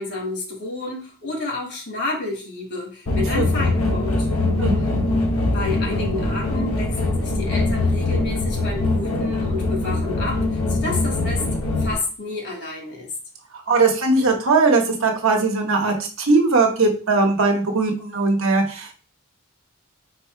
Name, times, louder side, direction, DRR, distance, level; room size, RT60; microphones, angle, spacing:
voice 1, 0.0-4.3 5.5-11.4 11.8-13.1, left 3 dB, 55° left, 1 dB, 1.6 m, -30 dB
sound 1, 3.1-11.9, left 2 dB, 85° left, 1.0 m, -22 dB
voice 2, 13.7-18.9, right 3 dB, 65° right, 2 dB, 1.0 m, -19 dB
4.1 x 2.8 x 4.5 m, 0.37 s
head